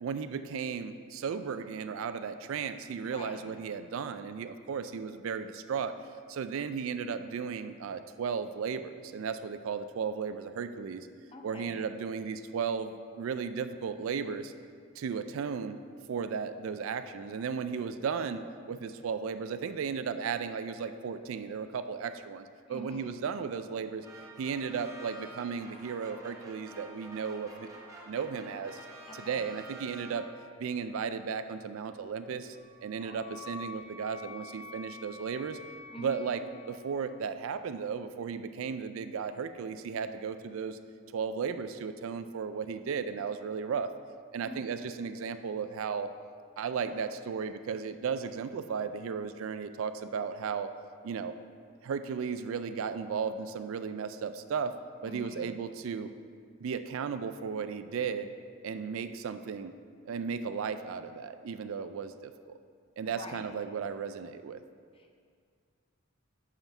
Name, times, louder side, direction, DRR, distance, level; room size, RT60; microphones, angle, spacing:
voice 1, 0.0-6.0 6.3-11.1 11.4-14.5 15.0-15.8 16.1-24.1 24.4-27.7 28.1-28.8 29.2-30.3 30.6-32.6 32.8-35.6 36.0-36.4 36.7-40.8 41.1-43.9 44.3-46.1 46.6-50.7 51.0-51.4 51.8-54.7 55.0-56.1 56.6-58.3 58.6-59.8 60.1-62.6 63.0-64.6, right 6 dB, 70° right, 10 dB, 0.3 m, -35 dB
voice 2, 3.0-3.4 11.3-11.9 22.7-23.2 29.1-29.5 33.0-33.2 35.9-36.3 44.4-44.7 55.0-55.6 63.1-63.5 64.9-65.1, left 1 dB, 25° left, 2 dB, 0.6 m, -46 dB
sound 1, 24.0-30.6, right 1 dB, 15° right, 1.0 m, -49 dB
Wind instrument woodwind instrument, 32.4-37.2, left 4 dB, 35° right, 1.5 m, -48 dB
5.7 x 5.5 x 5.8 m, 2.1 s
head